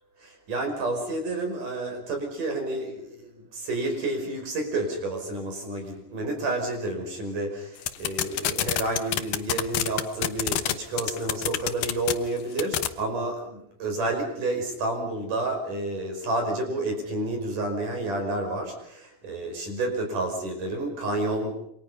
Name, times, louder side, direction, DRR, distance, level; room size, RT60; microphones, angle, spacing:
voice 1, 0.2-21.6, right 2 dB, 45° right, 4 dB, 6.7 m, -30 dB
sound 1, 7.8-10.7 11.0-12.1 12.6-12.9, left 13 dB, 75° left, 2.1 m, -25 dB
28.0 x 25.5 x 5.6 m, 0.72 s
omnidirectional pair, 5.3 m